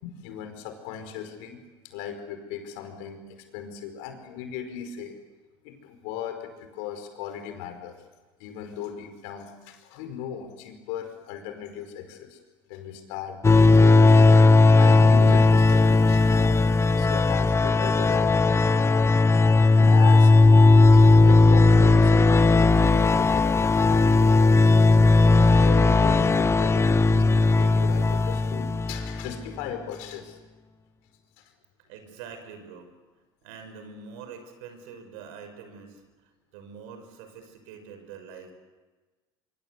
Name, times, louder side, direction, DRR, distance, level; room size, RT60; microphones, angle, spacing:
voice 1, 0.0-1.6 1.8-5.1 5.6-8.0 8.4-12.4 12.7-14.4 14.7-16.6 16.9-19.0 19.8-20.3 20.9-24.7 25.2-30.4 31.4-31.5, left 8 dB, 80° left, 6 dB, 5.1 m, -38 dB
sound 1, 13.4-29.4, left 3 dB, 20° left, 1.1 m, -17 dB
voice 2, 31.9-32.9 33.4-36.0 36.5-38.5, right 6 dB, 80° right, 7 dB, 5.9 m, -44 dB
25.0 x 25.0 x 8.3 m, 1.3 s
supercardioid pair, 85°, 13 cm